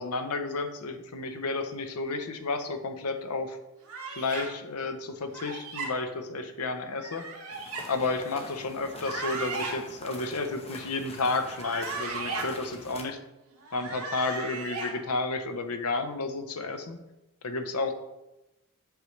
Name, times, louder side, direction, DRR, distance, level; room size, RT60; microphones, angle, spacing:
voice 1, 0.0-3.6 4.1-7.3 7.9-13.2 13.7-17.0 17.4-17.9, left 3 dB, 75° left, 8 dB, 0.8 m, -31 dB
sound 1, 3.9-4.5 5.3-5.9 7.0-7.8 8.9-9.7 11.4-12.5 13.6-14.9, right 3 dB, 75° right, 1.9 m, -36 dB
sound 2, 7.5-13.0, left 2 dB, 25° left, 0.9 m, -45 dB
8.0 x 6.3 x 3.2 m, 0.95 s
head